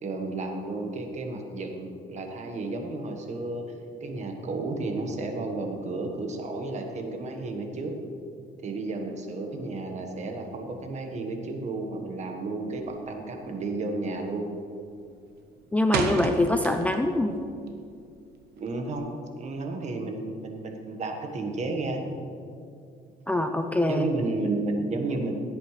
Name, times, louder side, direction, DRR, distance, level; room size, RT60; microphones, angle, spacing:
voice 1, 0.0-3.6 4.0-7.9 8.6-14.5 18.6-19.1 19.4-22.0 23.9-25.3, right 3 dB, 45° right, 3 dB, 1.5 m, -32 dB
sound 1, 12.7-13.1 13.4-13.7 14.1-14.5 14.8-17.2 17.5-19.0, right 4 dB, 70° right, 1.1 m, -31 dB
voice 2, 15.7-17.3 23.3-24.1, left 1 dB, 10° left, 6 dB, 0.5 m, -24 dB
16.5 x 8.3 x 3.3 m, 2.4 s
cardioid pair, 110°, 17 cm